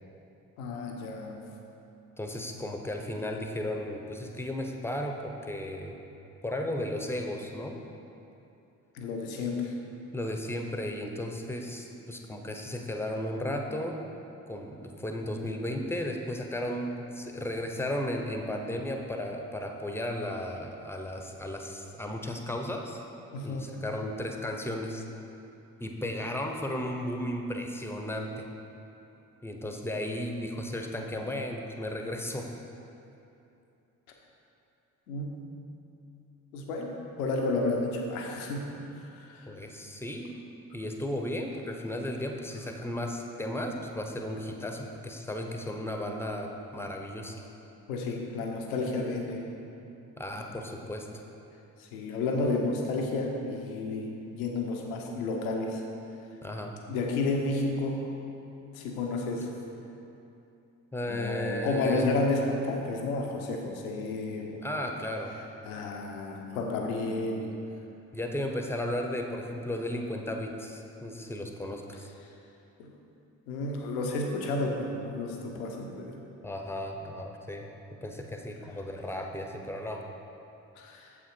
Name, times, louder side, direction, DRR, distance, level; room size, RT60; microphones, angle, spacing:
voice 1, 0.6-1.4 8.9-9.7 23.3-23.6 35.1-35.5 36.5-39.5 47.9-49.4 51.8-55.8 56.9-58.1 58.7-59.5 61.1-64.6 65.6-67.5 72.8-72.9 73.5-76.2 80.8-81.1, left 2 dB, 75° left, 1 dB, 1.0 m, -31 dB
voice 2, 2.2-5.9 6.4-7.7 10.1-14.0 14.5-23.0 23.4-25.0 25.8-28.5 29.4-32.5 39.5-40.4 40.7-47.4 50.2-51.2 56.4-56.8 60.9-62.1 64.6-65.3 68.1-72.1 76.4-77.7 78.0-80.0, left 1 dB, 5° left, 3 dB, 1.0 m, -34 dB
8.4 x 7.3 x 4.5 m, 2.8 s
figure-of-eight pair, 40°, 43 cm